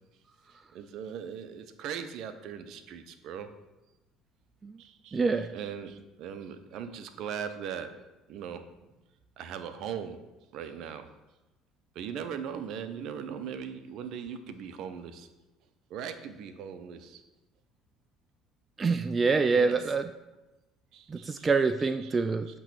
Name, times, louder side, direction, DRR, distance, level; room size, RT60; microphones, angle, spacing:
voice 1, 0.5-3.5 4.8-5.2 5.5-8.0 8.3-8.7 9.4-10.2 10.5-11.1 11.9-15.3 15.9-17.2 19.3-19.8 20.9-21.5 22.0-22.2 22.5-22.6, right 7 dB, 65° right, 9 dB, 0.7 m, -39 dB
voice 2, 5.1-5.5 18.8-20.1 21.1-22.6, right 4 dB, 25° right, 8 dB, 0.4 m, -26 dB
8.9 x 3.1 x 6.0 m, 1.0 s
supercardioid pair, 90°, 0 cm